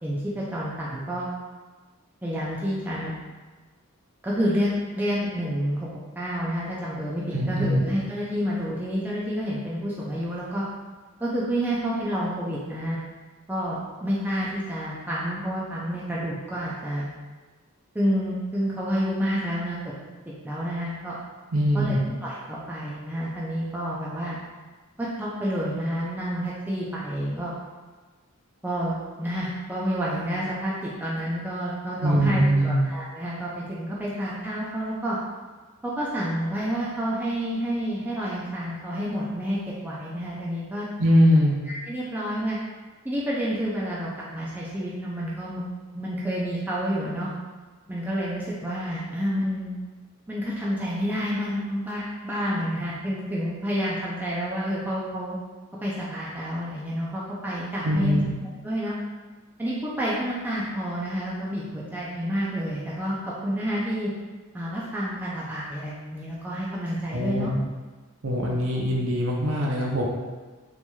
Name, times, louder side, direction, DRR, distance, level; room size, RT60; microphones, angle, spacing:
voice 1, 0.0-1.3 2.2-3.2 4.2-5.9 6.2-10.6 11.2-13.0 13.5-17.1 17.9-19.8 20.4-21.1 21.7-22.0 22.2-24.4 25.0-27.5 28.6-35.2 35.8-40.9 41.7-42.6 43.0-45.7 45.9-47.3 47.9-49.8 50.3-55.4 55.8-59.0 59.6-63.2 63.4-64.1 64.5-67.5, equal, 10° right, -7 dB, 0.4 m, -29 dB
voice 2, 7.3-7.8 21.5-22.0 32.0-32.8 41.0-41.6 57.8-58.3 67.1-67.6 68.2-70.0, equal, 60° right, -2 dB, 0.6 m, -22 dB
4.3 x 2.9 x 2.3 m, 1.3 s
head